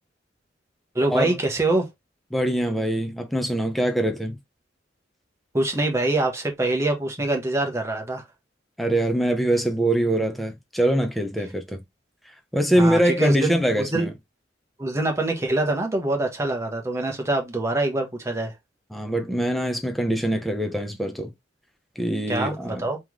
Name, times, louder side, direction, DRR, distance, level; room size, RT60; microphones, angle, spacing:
voice 1, 0.9-1.9 5.5-8.2 12.8-14.1 14.8-18.5 22.3-23.0, right 2 dB, 15° right, 1.1 m, -24 dB
voice 2, 2.3-4.4 8.8-11.8 12.2-14.1 18.9-21.3 22.0-22.9, right 1 dB, ahead, 0.6 m, -23 dB
3.5 x 3.1 x 3.6 m
head